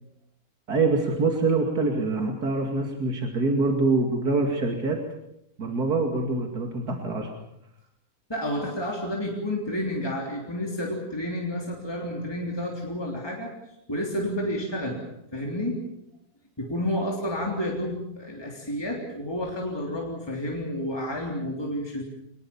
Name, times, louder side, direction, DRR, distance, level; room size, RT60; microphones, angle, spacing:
voice 1, 0.7-5.0 5.6-7.3, right 3 dB, 85° right, 2 dB, 3.0 m, -25 dB
voice 2, 8.3-13.5 13.9-15.0 15.3-15.8 16.6-22.0, left 1 dB, 15° left, -1 dB, 3.5 m, -30 dB
24.0 x 21.0 x 7.2 m, 0.78 s
omnidirectional pair, 1.6 m